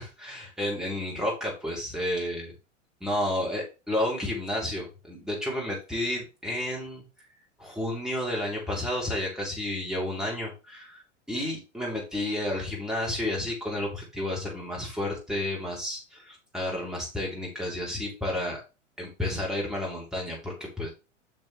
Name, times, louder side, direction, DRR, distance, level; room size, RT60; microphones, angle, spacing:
voice 1, 0.0-2.5 3.0-7.0 7.6-11.0 11.3-18.6 19.0-20.9, left 1 dB, ahead, -3 dB, 3.5 m, -31 dB
7.2 x 6.3 x 3.3 m, 0.29 s
figure-of-eight pair, 95°, 37 cm